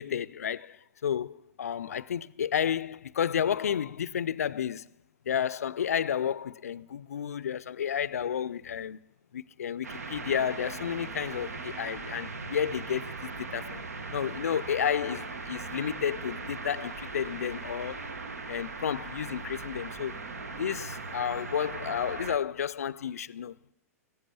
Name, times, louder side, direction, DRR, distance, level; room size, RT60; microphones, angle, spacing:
voice 1, 0.0-4.9 5.2-9.0 9.3-13.9 14.1-18.1 18.5-20.1 20.5-23.5, left 8 dB, 75° left, 0.4 m, -31 dB
sound 1, 9.8-22.4, right 4 dB, 80° right, 0.9 m, -39 dB
15.0 x 8.4 x 6.9 m
hypercardioid pair, 105°, 8 cm